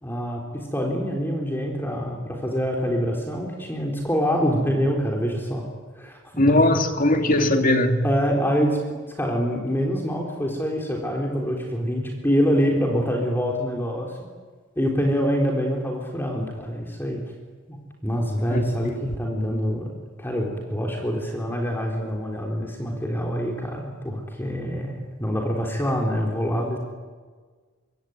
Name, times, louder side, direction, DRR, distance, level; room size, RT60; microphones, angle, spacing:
voice 1, 0.0-5.7 6.0-6.7 8.0-8.8 9.1-14.2 14.8-17.2 17.7-19.9 20.2-26.8, equal, 10° left, 0 dB, 3.8 m, -25 dB
voice 2, 6.4-8.0 18.5-18.6, left 1 dB, 45° left, 5 dB, 2.3 m, -19 dB
26.0 x 23.5 x 9.6 m, 1.5 s
head